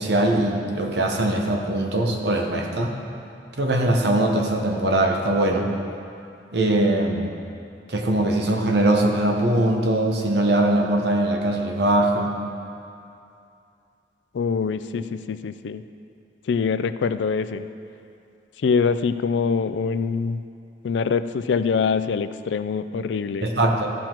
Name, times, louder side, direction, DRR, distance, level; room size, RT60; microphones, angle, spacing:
voice 1, 0.0-2.9 3.6-5.7 6.5-7.3 7.9-12.3 23.4-23.9, right 1 dB, 65° right, 2 dB, 1.1 m, -21 dB
voice 2, 14.3-15.8 16.5-17.7 18.6-20.4 20.8-23.5, left 5 dB, 80° left, 12 dB, 0.4 m, -24 dB
14.5 x 5.9 x 4.5 m, 2.6 s
head